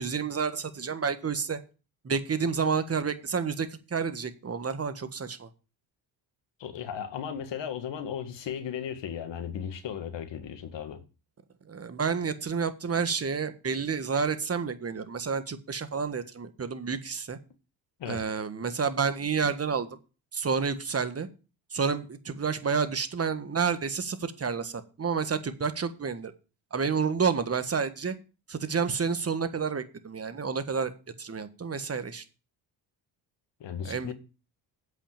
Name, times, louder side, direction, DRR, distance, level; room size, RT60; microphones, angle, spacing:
voice 1, 0.0-1.6 2.0-5.5 11.7-17.4 18.0-19.9 20.3-21.3 21.7-26.3 26.7-28.1 28.5-30.9 31.2-32.2 33.8-34.1, right 5 dB, 30° right, 1.5 m, -30 dB
voice 2, 6.6-11.0 18.0-18.3 33.6-34.1, left 8 dB, 65° left, 1.9 m, -36 dB
8.1 x 5.8 x 7.4 m
supercardioid pair, 70°, 47 cm